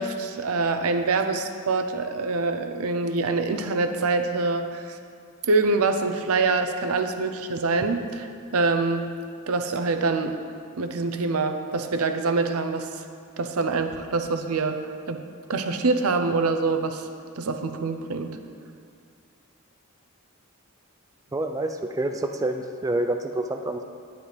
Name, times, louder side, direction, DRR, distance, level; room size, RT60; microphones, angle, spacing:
voice 1, 0.0-5.0 5.4-8.3 8.5-9.1 9.5-10.4 10.8-12.9 13.4-14.8 15.1-15.2 15.5-17.0 17.4-18.4, right 3 dB, 85° right, 7 dB, 0.7 m, -25 dB
voice 2, 21.3-23.8, right 2 dB, 15° right, 5 dB, 0.4 m, -27 dB
10.5 x 9.2 x 3.4 m, 2.3 s
head